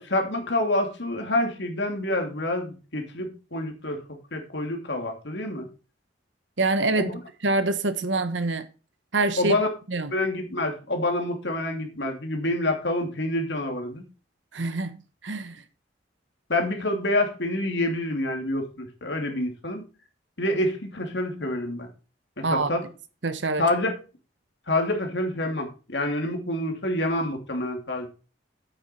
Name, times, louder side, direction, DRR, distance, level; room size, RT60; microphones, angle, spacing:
voice 1, 0.0-4.0 4.3-5.7 6.9-7.1 9.4-9.7 10.1-14.0 16.5-19.8 20.4-21.9 22.4-22.8 23.6-24.0 24.7-28.1, left 1 dB, 65° left, 2.6 m, -27 dB
voice 2, 6.6-7.1 7.4-8.7 9.1-9.6 9.9-10.1 14.5-15.0 15.2-15.6 22.4-22.7 23.2-23.7, right 2 dB, 85° right, 1.3 m, -25 dB
8.8 x 8.7 x 4.4 m
head